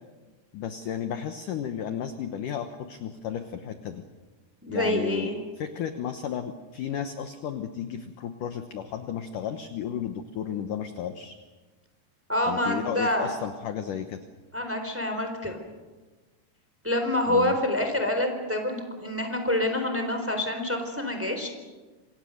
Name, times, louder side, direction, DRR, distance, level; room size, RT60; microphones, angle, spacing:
voice 1, 0.5-4.0 4.7-5.3 5.6-11.3 12.5-14.2 17.3-17.6, left 8 dB, 75° left, 8 dB, 1.9 m, -33 dB
voice 2, 4.6-5.3 12.3-13.3 14.5-15.6 16.8-21.5, left 1 dB, 5° right, 5 dB, 3.2 m, -27 dB
28.0 x 26.5 x 6.6 m, 1.3 s
omnidirectional pair, 5.3 m